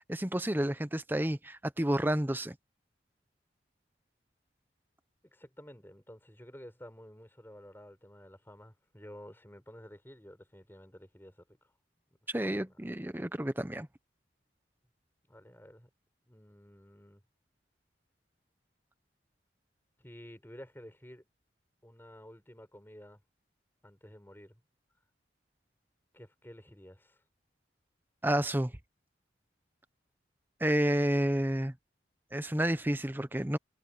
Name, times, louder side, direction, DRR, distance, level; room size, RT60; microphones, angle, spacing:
voice 1, 0.1-2.5 12.3-13.9 28.2-28.7 30.6-31.7 32.3-33.6, right 1 dB, 10° right, 0.8 m, -30 dB
voice 2, 5.2-11.7 12.3-12.7 15.3-15.9 16.3-17.2 20.0-21.2 21.8-23.2 23.8-24.6 26.1-27.2, equal, 10° left, 6.6 m, -52 dB
head